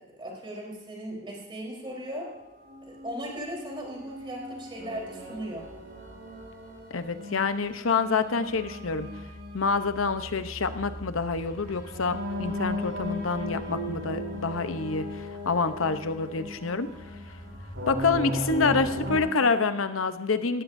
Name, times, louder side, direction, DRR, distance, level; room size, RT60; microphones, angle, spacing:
voice 1, 0.0-2.3 2.8-5.7, equal, 25° right, -2 dB, 4.0 m, -37 dB
sound 1, 2.6-19.2, left 1 dB, 70° right, 5.1 m, -37 dB
voice 2, 6.9-9.1 9.5-16.9 17.9-20.6, left 4 dB, 85° left, 10 dB, 0.8 m, -27 dB
18.0 x 14.5 x 2.7 m, 1.2 s
head